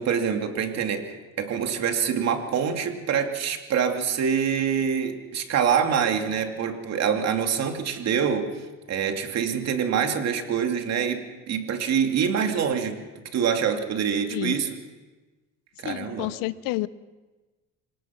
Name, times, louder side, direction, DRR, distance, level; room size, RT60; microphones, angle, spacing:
voice 1, 0.0-8.5 8.9-13.0 13.3-14.7 15.8-16.3, right 7 dB, 50° right, 5 dB, 2.6 m, -25 dB
voice 2, 15.8-16.9, left 19 dB, 75° left, 18 dB, 0.8 m, -29 dB
26.0 x 18.5 x 6.1 m, 1.2 s
cardioid pair, 110°, 33 cm